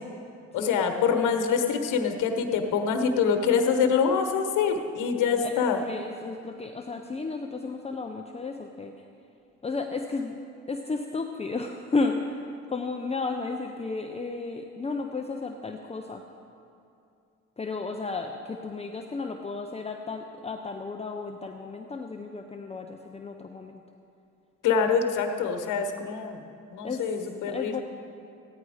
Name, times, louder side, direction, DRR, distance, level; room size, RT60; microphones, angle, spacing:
voice 1, 0.5-5.8 24.6-26.4 26.7-27.8, left 6 dB, 85° left, 6 dB, 1.2 m, -25 dB
voice 2, 5.4-9.1 9.6-10.4 10.7-16.2 17.6-23.8 26.8-27.1 27.5-27.8, left 3 dB, 20° left, 3 dB, 0.6 m, -33 dB
15.0 x 9.8 x 4.9 m, 2.6 s
cardioid pair, 90°, 30 cm